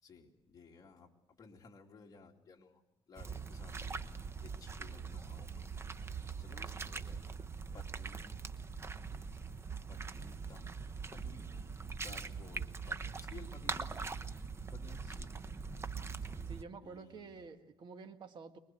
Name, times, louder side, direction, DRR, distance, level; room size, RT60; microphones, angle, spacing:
voice 1, 0.0-2.8 3.1-4.0 4.4-5.8 6.4-7.3 7.7-8.5 9.9-10.7 11.1-11.7 12.0-14.2 14.7-15.4 16.8-17.4, left 4 dB, 40° left, 1 dB, 2.8 m, -57 dB
sound 1, 3.2-16.6, right 5 dB, 25° right, 1.0 m, -42 dB
voice 2, 16.5-18.6, right 4 dB, 55° right, 6 dB, 1.9 m, -49 dB
24.0 x 21.5 x 7.7 m, 0.86 s
cardioid pair, 115°, 10 cm